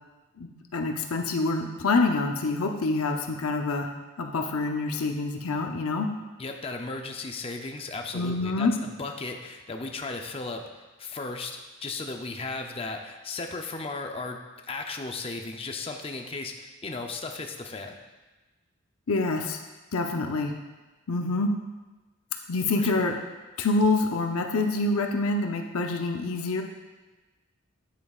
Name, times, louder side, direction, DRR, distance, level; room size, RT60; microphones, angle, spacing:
voice 1, 0.4-3.9 4.2-6.1 8.1-8.7 19.1-19.6 19.9-20.5 21.1-21.5 22.5-23.2 23.6-26.6, left 3 dB, 80° left, 3 dB, 0.7 m, -26 dB
voice 2, 6.4-17.9 22.8-23.0, left 3 dB, 25° left, 4 dB, 0.5 m, -36 dB
9.3 x 8.5 x 2.4 m, 1.2 s
head